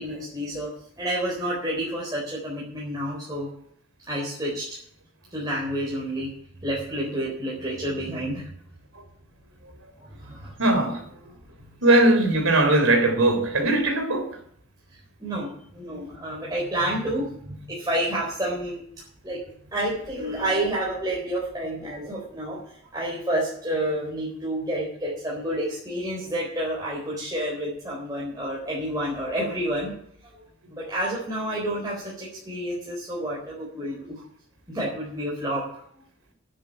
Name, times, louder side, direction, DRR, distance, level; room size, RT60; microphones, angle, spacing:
voice 1, 0.0-3.5 4.1-4.8 5.3-6.3 6.6-8.5 10.0-10.5 14.9-19.4 19.7-29.9 30.3-30.4 30.7-34.2 34.7-35.7, right 1 dB, 20° right, 4.1 m, -29 dB
voice 2, 10.6-11.0 11.8-14.3 15.8-16.1, right 2 dB, 85° right, 3.9 m, -20 dB
9.8 x 9.3 x 8.8 m
head